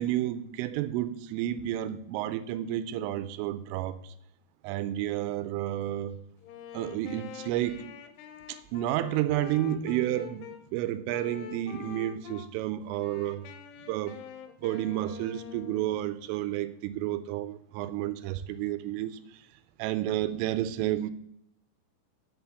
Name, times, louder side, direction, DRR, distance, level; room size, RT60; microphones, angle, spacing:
voice 1, 0.0-4.1 4.6-6.2 6.7-7.9 8.5-13.5 13.9-14.2 14.6-19.2 19.8-21.1, right 13 dB, 85° right, 3.2 m, -31 dB
Wind instrument woodwind instrument, 6.4-10.6 11.1-12.5 12.9-16.1, left 9 dB, 80° left, 3.2 m, -45 dB
7.9 x 7.1 x 6.9 m
omnidirectional pair, 5.7 m